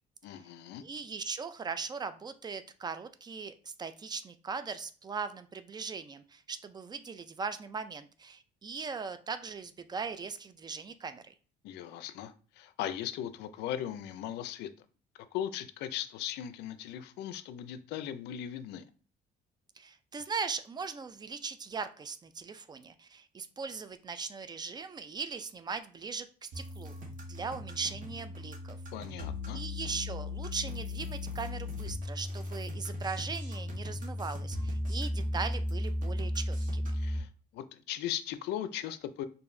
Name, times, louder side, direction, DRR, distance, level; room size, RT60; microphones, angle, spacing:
voice 1, 0.2-0.8 11.6-14.7 15.3-18.8 28.9-29.6 36.9-39.3, left 11 dB, 85° left, 0.4 m, -38 dB
voice 2, 0.8-11.3 19.8-26.9 27.3-28.8 29.5-37.0, right 5 dB, 25° right, 0.4 m, -39 dB
sound 1, 26.5-37.2, left 1 dB, 50° right, 1.1 m, -36 dB
4.7 x 2.6 x 2.6 m
cardioid pair, 110°, 17 cm